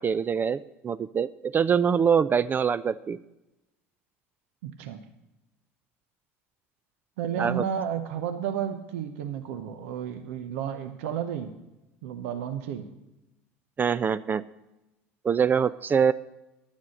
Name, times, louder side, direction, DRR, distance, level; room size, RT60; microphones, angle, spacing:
voice 1, 0.0-3.2 7.4-7.6 13.8-14.4 15.2-16.1, right 7 dB, 25° right, 16 dB, 0.3 m, -24 dB
voice 2, 4.6-5.0 7.2-11.5 12.0-12.9, right 9 dB, 75° right, 8 dB, 0.8 m, -32 dB
10.5 x 7.3 x 6.3 m, 0.96 s
hypercardioid pair, 80°, 7 cm